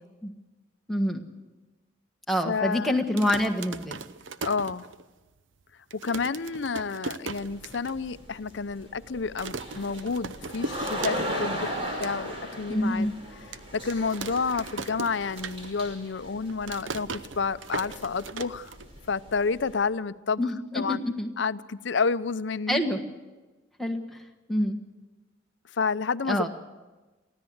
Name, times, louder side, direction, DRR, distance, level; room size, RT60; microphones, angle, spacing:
voice 1, 0.9-1.2 2.3-4.0 12.7-13.1 20.4-21.3 22.7-23.0 23.8-24.2 24.5-24.8 26.3-26.5, left 1 dB, ahead, 2 dB, 1.5 m, -26 dB
voice 2, 2.5-3.0 4.4-4.9 5.9-13.1 13.7-18.7 19.1-20.4 20.7-21.0 21.4-22.8 25.7-26.5, left 4 dB, 65° left, 15 dB, 0.6 m, -30 dB
sound 1, 3.0-5.3 5.6-5.7 5.9-8.0 8.3-8.4 8.6-9.0 9.4-11.5 11.8-12.1 12.7-12.8 13.5-16.0 16.2-19.2, right 4 dB, 75° right, 0.8 m, -38 dB
sound 2, 7.3-19.8, equal, 30° right, 5.4 m, -38 dB
24.0 x 15.5 x 7.9 m, 1.2 s
head